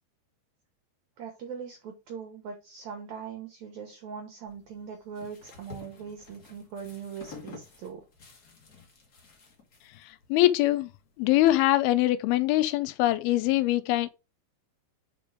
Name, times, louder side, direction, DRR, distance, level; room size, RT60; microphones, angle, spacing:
voice 1, 1.2-8.0, right 6 dB, 70° right, 1.8 m, -41 dB
sound 1, 4.5-11.5, left 5 dB, 45° left, 1.3 m, -51 dB
voice 2, 10.3-10.9 11.2-14.1, left 15 dB, 85° left, 2.5 m, -23 dB
5.2 x 5.1 x 4.8 m
omnidirectional pair, 4.4 m